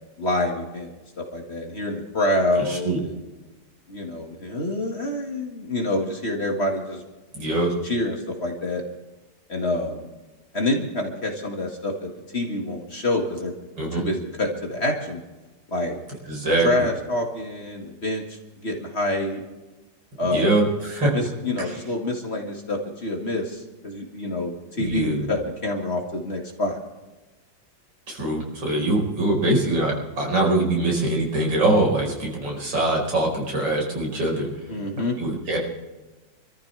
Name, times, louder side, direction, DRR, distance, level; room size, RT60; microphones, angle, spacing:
voice 1, 0.2-0.9 1.2-3.1 3.9-7.0 7.6-8.8 9.5-10.1 10.5-13.5 14.0-15.2 15.7-16.0 16.6-19.4 20.2-20.7 21.1-26.8 34.7-35.2, left 1 dB, 35° left, 1 dB, 2.2 m, -27 dB
voice 2, 2.6-3.0 7.3-7.7 13.8-14.1 16.3-16.9 20.2-21.1 24.8-25.3 28.1-34.5 35.2-35.6, right 2 dB, 80° right, -2 dB, 5.5 m, -23 dB
27.0 x 14.0 x 3.4 m, 1.2 s
omnidirectional pair, 2.0 m